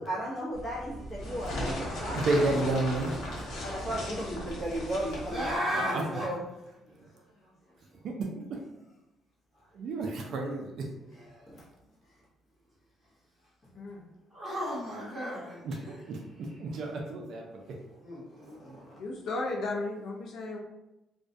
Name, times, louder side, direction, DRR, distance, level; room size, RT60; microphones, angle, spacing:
voice 1, 0.0-2.3 3.5-5.4 5.7-6.4 11.5-11.6 18.4-18.9, right 1 dB, 30° left, -6 dB, 0.8 m, -36 dB
sound 1, 0.5-5.6, left 1 dB, 80° left, 0.7 m, -37 dB
voice 2, 1.6-3.1 5.8-6.0 8.0-8.3 9.7-10.9 15.6-16.2 16.6-17.6, right 2 dB, 50° right, 1 dB, 0.3 m, -31 dB
voice 3, 3.3-3.6 5.2-6.3 11.0-11.5 14.3-16.1 16.5-16.6 18.0-18.8, equal, 15° right, -8 dB, 1.0 m, -36 dB
voice 4, 19.0-20.6, left 2 dB, 60° left, -1 dB, 0.4 m, -34 dB
2.3 x 2.1 x 2.6 m, 0.96 s
cardioid pair, 170°, 0 cm